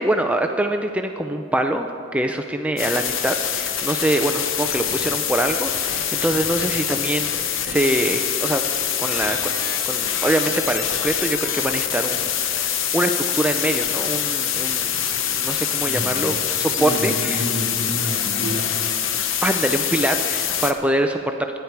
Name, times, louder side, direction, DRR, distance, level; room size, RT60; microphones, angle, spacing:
voice 1, 0.0-8.6 9.0-9.5 9.9-12.3 12.6-14.9 15.3-17.4 19.4-21.6, right 1 dB, 5° right, 5 dB, 0.4 m, -24 dB
sound 1, 2.8-20.7, left 9 dB, 70° left, 0.8 m, -24 dB
voice 2, 16.7-18.7, equal, 45° left, -2 dB, 3.0 m, -29 dB
25.5 x 9.7 x 4.6 m, 2.8 s
head